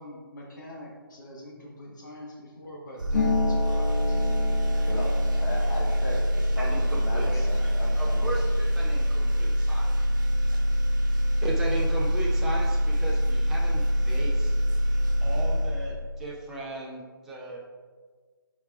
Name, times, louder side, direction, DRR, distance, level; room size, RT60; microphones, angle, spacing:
voice 1, 0.0-4.9 7.2-8.1, left 1 dB, 55° left, -3 dB, 1.4 m, -45 dB
sound 1, 3.0-16.4, equal, 60° right, 1.1 m, -25 dB
Harp, 3.1-10.6 10.9-12.0 12.2-12.9, left 5 dB, 35° left, 1.3 m, -35 dB
voice 2, 4.8-8.3, left 1 dB, 20° left, -2 dB, 1.0 m, -36 dB
voice 3, 6.6-9.9 11.4-14.5 15.2-17.6, right 2 dB, 5° right, -4 dB, 0.4 m, -36 dB
8.6 x 4.7 x 2.4 m, 1.5 s
figure-of-eight pair, 145°, 12 cm